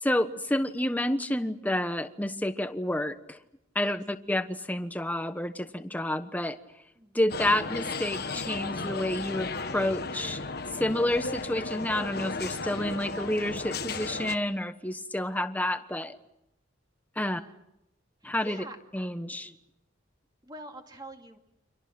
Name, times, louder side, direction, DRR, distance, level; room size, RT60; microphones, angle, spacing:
voice 1, 0.0-3.4 3.7-6.6 7.1-10.4 10.7-16.2 17.2-17.4 18.2-18.6 18.9-19.5, left 1 dB, 10° left, 9 dB, 1.2 m, -29 dB
sound 1, 7.3-14.4, left 3 dB, 55° left, 1.5 m, -35 dB
voice 2, 18.2-18.8 20.4-21.4, right 1 dB, 20° right, 3 dB, 2.4 m, -45 dB
30.0 x 26.0 x 6.1 m, 0.84 s
head